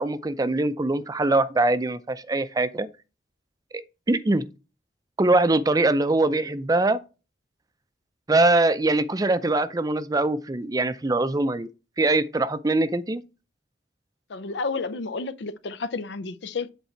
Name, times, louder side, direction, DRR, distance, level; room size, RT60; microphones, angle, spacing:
voice 1, 0.0-2.9 4.1-4.5 5.2-7.0 8.3-11.7 12.0-13.2, right 2 dB, 20° right, 0.5 m, -22 dB
voice 2, 14.3-16.7, left 4 dB, 75° left, 0.5 m, -31 dB
8.2 x 4.0 x 4.4 m
head